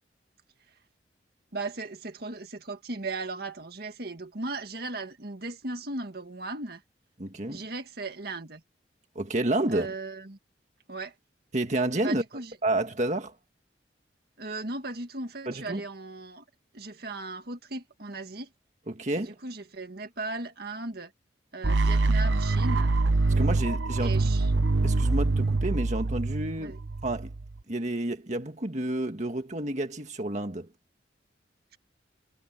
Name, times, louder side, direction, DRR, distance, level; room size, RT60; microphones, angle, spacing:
voice 1, 1.5-6.8 7.5-8.6 9.7-10.4 10.9-11.1 12.0-12.5 14.4-16.4 16.7-18.5 19.2-21.1 21.5-22.9 24.0-24.5 26.6-26.8, right 2 dB, 55° right, 1.9 m, -37 dB
voice 2, 7.2-7.6 9.2-9.9 11.5-12.2 12.6-13.4 15.5-15.8 18.9-19.4 23.4-24.3 24.8-26.8 27.0-27.3 27.7-30.7, right 1 dB, 40° right, 1.8 m, -30 dB
sound 1, 21.6-27.6, right 3 dB, 85° right, 0.8 m, -25 dB
head